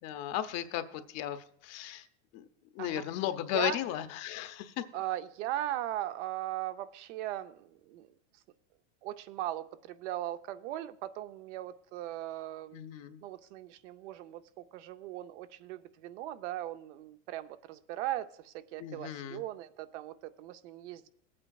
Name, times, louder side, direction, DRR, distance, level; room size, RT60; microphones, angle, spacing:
voice 1, 0.0-2.0 2.3-2.4 2.7-4.8 12.7-13.2 18.8-19.4, left 12 dB, 45° left, 10 dB, 0.7 m, -35 dB
voice 2, 4.9-8.1 9.0-12.8 13.2-21.1, right 13 dB, 75° right, 11 dB, 0.7 m, -38 dB
18.0 x 8.6 x 2.3 m, 0.68 s
supercardioid pair, 140°, 35 cm